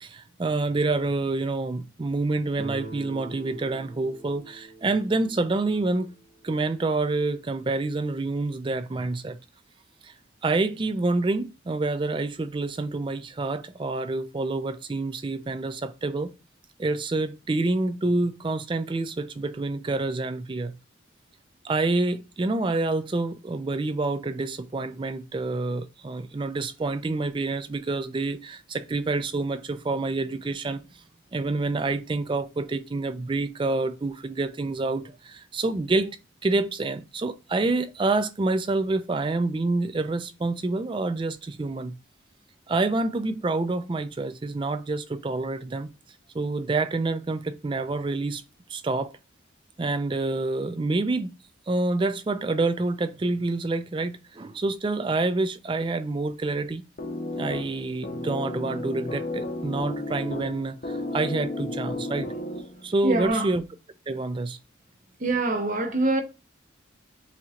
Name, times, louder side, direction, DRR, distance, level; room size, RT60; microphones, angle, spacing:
voice 1, 0.0-6.1 6.4-9.4 10.0-10.1 10.4-16.3 16.8-20.7 21.6-31.0 31.3-41.9 42.7-45.9 46.3-48.4 48.7-49.1 49.8-51.4 51.7-56.9 57.4-62.3 62.8-63.6 64.1-64.6, right 2 dB, 25° right, 0.3 m, -27 dB
Guitar, 2.6-7.4, right 2 dB, 80° right, 1.9 m, -44 dB
sound 1, 57.0-63.0, left 1 dB, 45° left, 0.7 m, -33 dB
voice 2, 63.0-63.5 65.2-66.2, right 2 dB, 40° right, 0.8 m, -24 dB
7.2 x 2.8 x 2.4 m
head